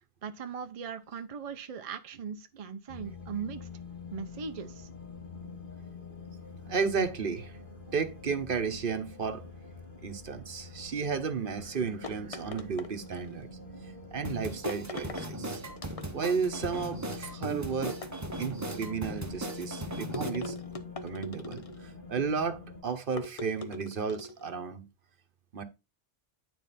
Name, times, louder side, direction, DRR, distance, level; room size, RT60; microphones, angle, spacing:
voice 1, 0.2-3.7 4.1-4.9, right 6 dB, 45° right, 0.6 m, -39 dB
sound 1, 2.9-22.8, left 4 dB, 55° left, 2.1 m, -46 dB
voice 2, 6.6-7.6 7.9-9.4 10.0-13.5 14.1-15.6 16.1-18.0 18.4-20.6 21.0-24.9 25.5-25.6, right 5 dB, 60° right, 1.1 m, -33 dB
sound 2, 12.0-13.4 14.7-15.3 15.8-16.4 17.9-18.8 20.1-21.9 23.2-24.4, left 1 dB, 40° left, 0.8 m, -41 dB
sound 3, 14.2-20.3, right 2 dB, 20° right, 0.9 m, -38 dB
9.3 x 4.3 x 4.2 m
omnidirectional pair, 1.0 m